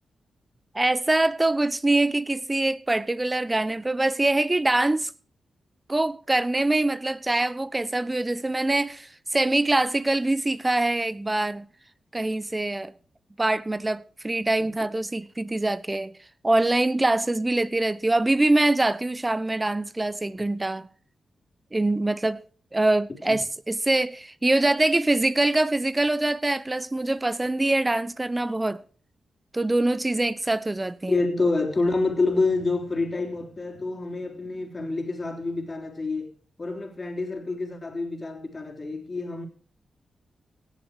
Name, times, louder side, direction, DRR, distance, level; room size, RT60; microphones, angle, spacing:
voice 1, 0.7-5.1 5.9-11.7 12.1-12.9 13.4-16.1 16.4-20.9 21.7-22.4 22.7-28.8 29.5-31.2, right 2 dB, 25° right, 0.7 m, -24 dB
voice 2, 31.1-36.3 36.6-39.5, left 3 dB, 40° left, 3.5 m, -27 dB
17.5 x 7.1 x 4.8 m
supercardioid pair, 45°, 0 cm